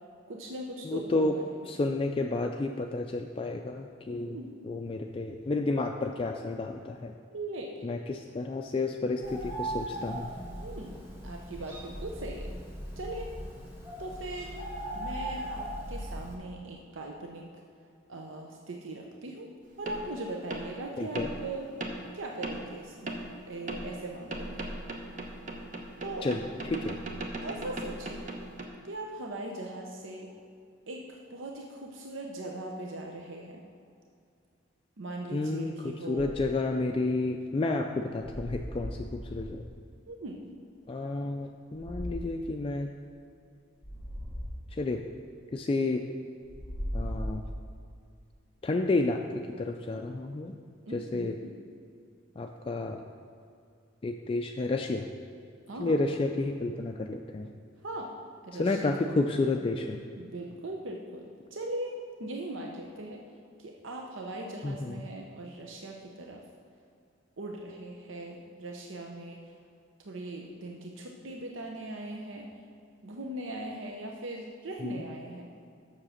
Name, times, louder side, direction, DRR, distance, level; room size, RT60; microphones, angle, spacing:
voice 1, 0.3-1.6 4.1-4.5 7.3-7.9 10.6-12.5 13.0-13.3 14.0-14.6 14.9-17.5 18.1-19.5 19.8-21.7 22.1-23.2 23.5-24.7 26.0-26.3 27.4-28.2 28.8-30.3 30.9-33.6 35.0-36.3 40.1-40.4 50.8-51.5 55.7-56.0 57.8-58.1 58.4-59.0 60.2-61.9 62.2-63.2 63.6-66.4 67.4-69.4 70.0-72.5 73.0-75.5, right 2 dB, 75° right, 1 dB, 0.7 m, -40 dB
voice 2, 0.8-1.3 1.7-4.4 4.6-7.1 7.8-10.3 21.0-21.3 26.2-26.4 26.7-27.0 35.3-39.7 40.9-42.9 44.7-45.0 45.5-46.1 46.9-47.4 48.6-50.5 50.9-51.4 52.4-53.0 54.0-55.1 55.8-57.5 58.5-60.0 64.6-65.0 74.8-75.1, left 2 dB, 25° left, 3 dB, 0.3 m, -31 dB
Bird, 9.2-16.3, right 1 dB, 10° right, 1.6 m, -39 dB
sound 1, 19.9-20.0 20.5-20.7 21.2-21.4 21.8-22.0 22.4-22.7 23.1-23.3 23.7-23.9 24.3-28.7, right 1 dB, 40° right, 0.9 m, -37 dB
sound 2, 36.2-36.6 38.2-39.8 41.8-42.4 43.8-44.6 46.4-47.8, equal, 5° left, 1.4 m, -38 dB
7.4 x 6.6 x 6.4 m, 2.4 s
head